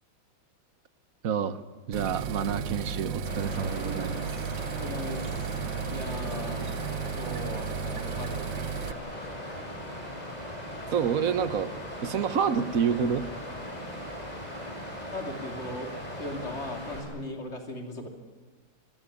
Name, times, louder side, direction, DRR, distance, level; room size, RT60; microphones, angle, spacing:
voice 1, 1.2-1.6 1.9-4.3 10.9-11.7 12.0-13.3, right 7 dB, 55° right, 14 dB, 1.3 m, -28 dB
sound 1, 1.9-8.9, right 7 dB, 80° right, 1.7 m, -34 dB
Water, 3.2-17.0, equal, 20° left, 5.4 m, -39 dB
voice 2, 4.7-5.4 5.9-6.7 7.2-8.8 9.1-9.5 15.0-15.9 16.2-18.1, left 2 dB, 35° left, 4 dB, 3.0 m, -38 dB
25.5 x 16.0 x 9.9 m, 1.5 s
omnidirectional pair, 2.0 m